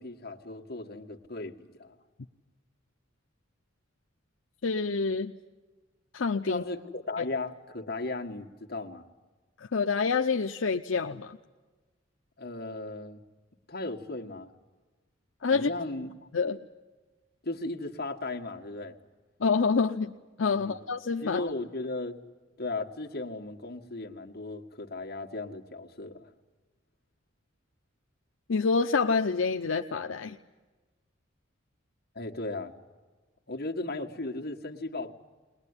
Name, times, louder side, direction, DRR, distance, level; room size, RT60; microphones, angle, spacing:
voice 1, 0.0-2.0 6.5-9.1 12.4-13.2 13.7-14.5 15.5-16.3 17.4-19.0 20.5-20.8 21.2-22.2 22.6-26.3 32.2-32.7 33.5-35.1, left 2 dB, 50° left, 3 dB, 1.8 m, -36 dB
voice 2, 4.6-5.3 6.1-6.6 9.6-11.4 15.4-15.7 16.3-16.6 19.4-20.1 20.4-21.5 28.5-30.4, left 4 dB, 75° left, 5 dB, 0.7 m, -27 dB
21.0 x 21.0 x 9.7 m, 1.3 s
head